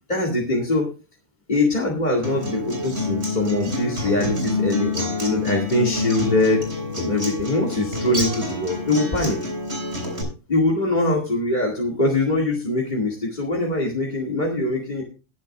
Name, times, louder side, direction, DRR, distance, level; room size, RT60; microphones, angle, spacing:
voice 1, 0.1-0.9 1.5-6.6 7.0-9.4 10.5-15.0, left 2 dB, 35° left, 1 dB, 2.3 m, -23 dB
Acoustic guitar, 2.2-10.2, left 2 dB, 55° right, 6.4 m, -27 dB
21.5 x 8.1 x 2.4 m, 0.33 s
omnidirectional pair, 1.4 m